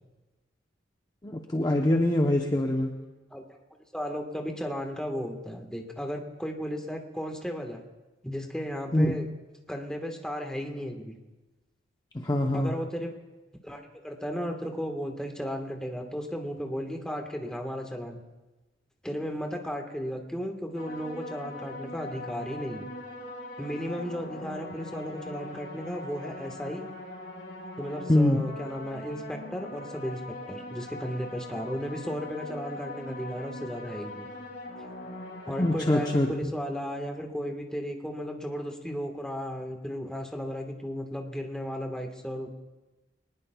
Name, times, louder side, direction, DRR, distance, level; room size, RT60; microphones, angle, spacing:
voice 1, 1.2-2.9 8.9-9.1 12.1-12.7 28.1-28.4 35.6-36.3, left 1 dB, 20° left, 1 dB, 0.7 m, -24 dB
voice 2, 3.9-7.8 8.2-9.3 9.7-11.2 12.5-13.1 13.6-18.2 19.0-22.9 23.6-26.8 27.8-30.2 30.5-34.3 35.5-42.5, equal, 5° left, 2 dB, 1.3 m, -35 dB
sound 1, 20.8-36.3, left 1 dB, 80° left, 4.2 m, -41 dB
23.0 x 19.5 x 2.3 m, 1.2 s
head